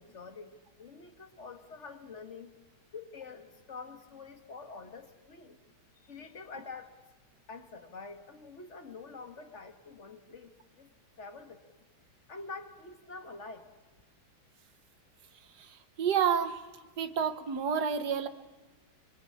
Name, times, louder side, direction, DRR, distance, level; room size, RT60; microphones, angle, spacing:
voice 1, 0.0-2.5 2.9-5.6 6.0-6.9 7.5-10.9 11.2-11.8 12.3-13.7, left 4 dB, 35° left, 7 dB, 1.8 m, -46 dB
voice 2, 15.6-16.6 17.0-18.3, right 7 dB, 55° right, 11 dB, 1.6 m, -29 dB
24.0 x 23.5 x 8.6 m, 1.2 s
omnidirectional pair, 2.2 m